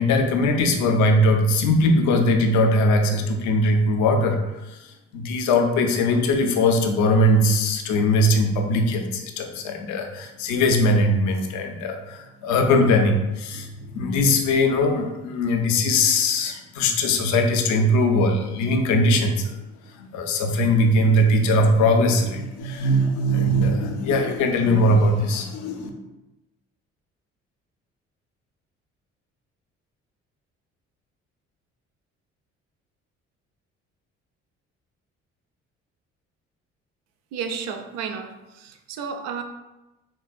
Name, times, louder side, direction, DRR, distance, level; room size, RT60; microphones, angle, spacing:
voice 1, 0.0-19.5 19.9-25.9, left 1 dB, 55° left, 4 dB, 0.5 m, -20 dB
voice 2, 37.3-39.4, right 6 dB, 45° right, 6 dB, 0.4 m, -32 dB
3.5 x 2.1 x 2.3 m, 1.0 s
figure-of-eight pair, 45°, 36 cm